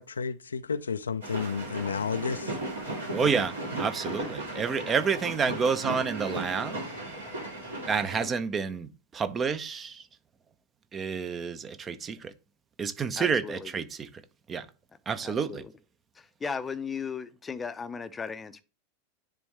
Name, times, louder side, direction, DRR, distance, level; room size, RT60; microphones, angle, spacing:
voice 1, 0.0-2.6, left 5 dB, 70° left, 0.4 m, -31 dB
sound 1, 1.2-8.2, right 2 dB, 75° right, 2.7 m, -36 dB
voice 2, 3.1-6.8 7.9-10.1 10.9-12.3 12.8-14.1 14.5-14.7 15.1-15.6, right 6 dB, 20° right, 0.6 m, -29 dB
voice 3, 13.2-13.7 15.2-15.7 16.2-18.6, left 5 dB, 15° left, 0.6 m, -36 dB
10.0 x 3.5 x 3.1 m
figure-of-eight pair, 90°, 0 cm